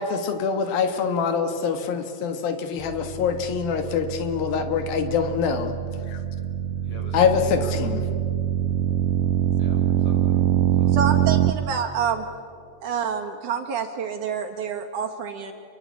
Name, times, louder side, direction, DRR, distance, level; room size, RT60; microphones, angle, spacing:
voice 1, 0.0-5.7 6.1-6.2 7.1-8.0, left 6 dB, 85° left, 7 dB, 3.4 m, -24 dB
sound 1, 2.8-11.5, right 11 dB, 80° right, 1.4 m, -24 dB
voice 2, 6.8-7.8 9.6-10.4 10.8-11.2, equal, 40° left, -1 dB, 7.7 m, -42 dB
voice 3, 10.9-12.2 12.8-15.5, right 7 dB, 65° right, 3 dB, 3.2 m, -27 dB
28.0 x 23.5 x 8.4 m, 2.4 s
omnidirectional pair, 4.0 m